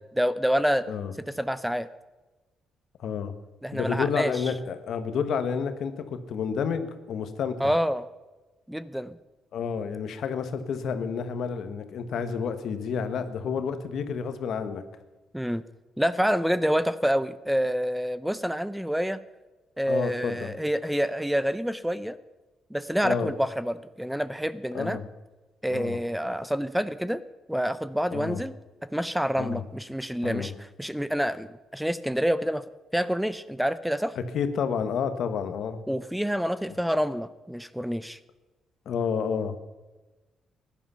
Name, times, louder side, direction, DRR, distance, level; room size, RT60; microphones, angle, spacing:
voice 1, 0.1-0.8 1.4-1.9 3.6-4.3 7.6-8.1 8.7-9.2 15.3-15.6 16.0-19.2 19.8-22.2 22.7-25.0 25.6-27.2 27.5-28.5 28.9-30.5 30.8-31.5 31.7-32.6 32.9-34.1 35.9-38.2, equal, 5° right, 15 dB, 0.7 m, -27 dB
voice 2, 3.0-3.3 3.7-7.7 9.5-14.8 19.9-20.6 23.0-23.3 24.7-25.0 25.7-26.0 28.1-28.4 29.4-29.6 30.2-30.5 34.1-35.8 38.8-39.6, left 6 dB, 70° left, 9 dB, 1.3 m, -30 dB
15.5 x 11.0 x 5.7 m, 1.2 s
cardioid pair, 70°, 0 cm